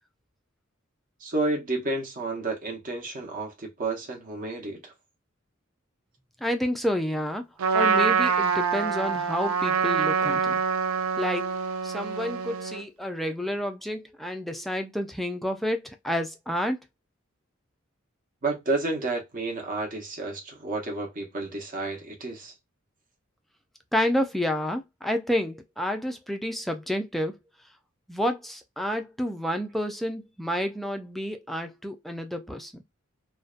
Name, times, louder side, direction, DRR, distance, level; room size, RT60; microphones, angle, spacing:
voice 1, 1.2-4.9 18.4-22.5, right 2 dB, 40° right, 0.8 m, -31 dB
voice 2, 6.4-7.4 7.7-10.6 11.2-11.6 11.8-16.8 23.9-27.4 28.1-32.8, equal, ahead, 0.3 m, -29 dB
Trumpet, 7.6-12.8, right 6 dB, 85° right, 0.5 m, -25 dB
2.6 x 2.1 x 2.3 m
head